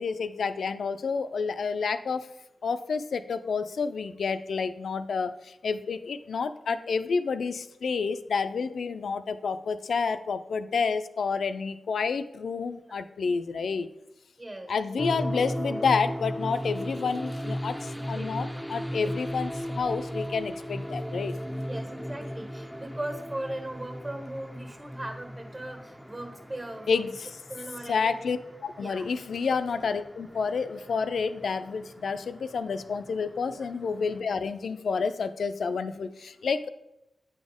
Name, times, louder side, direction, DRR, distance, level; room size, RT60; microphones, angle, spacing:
voice 1, 0.0-2.3 2.6-13.9 14.7-21.3 26.9-27.1 27.9-36.7, left 5 dB, 80° left, 11 dB, 0.3 m, -29 dB
voice 2, 14.4-14.7 15.2-15.3 17.9-18.4 18.8-19.1 21.6-27.0 27.5-28.2 28.8-29.1 33.5-33.7, right 1 dB, 40° right, 3 dB, 1.6 m, -39 dB
sound 1, 15.0-34.2, equal, 5° right, 0.4 m, -37 dB
8.5 x 4.2 x 3.6 m, 0.87 s
cardioid pair, 45°, 0 cm